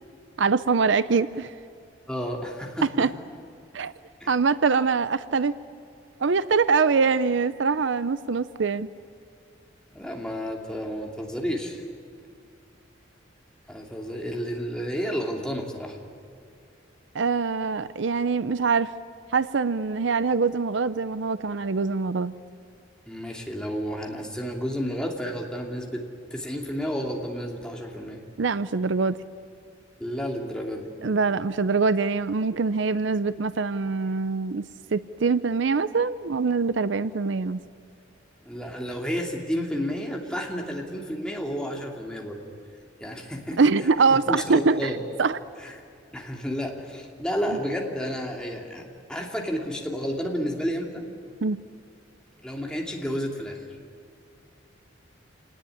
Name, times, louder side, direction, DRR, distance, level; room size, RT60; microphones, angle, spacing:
voice 1, 0.4-1.5 3.0-3.1 3.7-3.9 4.3-5.5 6.2-8.9 17.1-18.9 19.3-22.3 28.4-29.2 31.0-34.7 34.9-37.6 43.6-44.9 45.2-45.4 51.4-51.6, right 4 dB, 65° right, 15 dB, 0.6 m, -23 dB
voice 2, 2.1-3.1 4.2-4.3 9.9-11.8 13.7-16.0 23.1-28.2 30.0-30.9 38.4-42.4 43.0-45.0 45.6-45.8 46.1-48.8 49.1-51.0 52.4-53.7, equal, 5° left, 0 dB, 2.8 m, -31 dB
27.0 x 19.0 x 9.9 m, 2.4 s
head